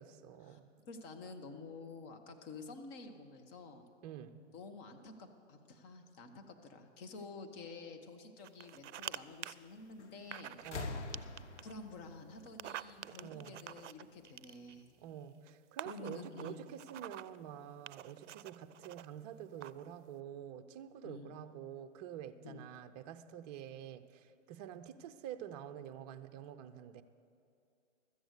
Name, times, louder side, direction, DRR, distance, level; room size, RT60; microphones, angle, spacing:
voice 1, 0.0-0.7 4.0-4.4 10.6-11.2 13.2-13.6 15.0-27.0, right 10 dB, 35° right, 8 dB, 0.6 m, -48 dB
voice 2, 0.8-3.8 4.5-10.6 11.6-14.9 15.8-16.6 21.0-21.3 22.4-22.6, left 3 dB, 30° left, 5 dB, 1.1 m, -50 dB
sound 1, 8.4-9.2 9.4-9.5 10.3-10.9 11.1-11.7 12.5-14.8 15.5-15.6 15.8-17.4 17.9-19.0 19.6-19.9, right 11 dB, 75° right, 0.5 m, -47 dB
sound 2, 10.0-10.3 10.6-13.4 14.5-14.6, left 4 dB, 70° left, 1.2 m, -45 dB
13.5 x 7.9 x 8.1 m, 2.5 s
hypercardioid pair, 130°, 36 cm